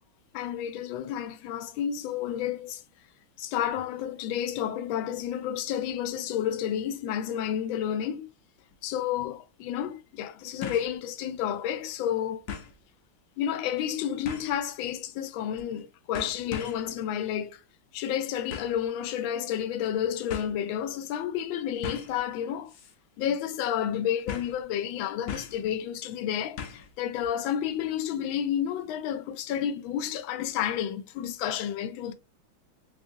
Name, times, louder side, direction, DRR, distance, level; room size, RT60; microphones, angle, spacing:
voice 1, 0.3-2.8 3.4-8.3 8.8-12.4 13.4-17.6 17.9-22.7 23.2-32.1, left 9 dB, 85° left, 1.4 m, -31 dB
sound 1, 8.7-8.8 10.6-11.0 11.4-11.5 12.5-12.8 14.2-14.6 15.6-15.8 16.1-16.9 18.5-18.8 19.8-19.9 20.3-20.5 21.8-22.2 22.7-22.9 23.2-23.3 24.3-24.6 25.3-25.7 26.6-26.9 27.2-27.3, left 7 dB, 65° left, 1.1 m, -38 dB
3.5 x 3.4 x 2.6 m
omnidirectional pair, 2.1 m